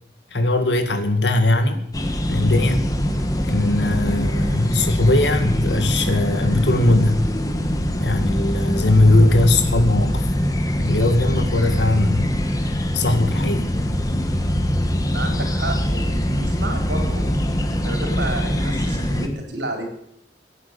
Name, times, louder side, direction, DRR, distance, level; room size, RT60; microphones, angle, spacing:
voice 1, 0.3-1.9 2.2-2.8 3.4-7.3 8.0-10.3 10.8-12.3 12.9-13.7, left 2 dB, 80° left, 7 dB, 2.2 m, -19 dB
sound 1, 1.9-19.3, equal, 20° left, 1.5 m, -23 dB
voice 2, 15.1-17.4 17.8-19.8, right 1 dB, 80° right, 3 dB, 4.6 m, -30 dB
17.0 x 9.7 x 8.5 m, 0.71 s
head